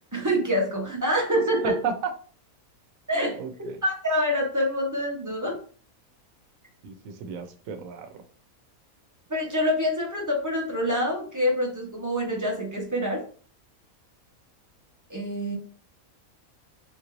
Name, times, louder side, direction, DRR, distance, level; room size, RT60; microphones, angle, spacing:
voice 1, 0.1-1.8 3.1-3.4 3.8-5.6 9.3-13.2 15.1-15.6, equal, 20° right, -2 dB, 0.6 m, -26 dB
voice 2, 1.6-2.1 3.4-3.8 6.8-8.1, right 6 dB, 75° right, 7 dB, 1.0 m, -32 dB
3.7 x 2.5 x 3.0 m, 0.42 s
omnidirectional pair, 1.5 m